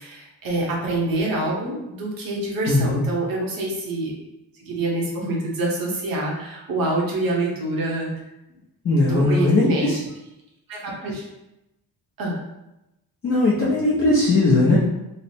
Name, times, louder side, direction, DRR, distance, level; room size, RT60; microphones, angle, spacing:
voice 1, 0.0-4.1 4.6-8.1 9.0-9.9 10.7-11.3 12.2-12.4, right 2 dB, 60° right, -2 dB, 1.0 m, -26 dB
voice 2, 2.7-3.0 8.8-10.0 13.2-14.8, left 2 dB, 35° left, -7 dB, 0.7 m, -19 dB
3.2 x 2.0 x 4.1 m, 0.93 s
wide cardioid pair, 175°, 39 cm